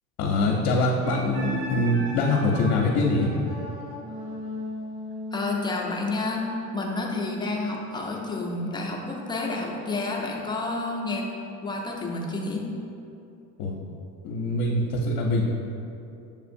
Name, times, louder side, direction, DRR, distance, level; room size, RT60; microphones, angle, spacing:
voice 1, 0.2-3.3 13.6-13.7 14.2-15.4, left 2 dB, 60° left, -2 dB, 0.7 m, -23 dB
Wind instrument woodwind instrument, 1.0-6.4, left 1 dB, 55° right, 1.1 m, -37 dB
voice 2, 5.3-6.5 6.7-11.3 11.6-12.7, left 2 dB, 10° left, -1 dB, 0.4 m, -29 dB
6.8 x 2.4 x 2.6 m, 2.7 s
hypercardioid pair, 90°, 43 cm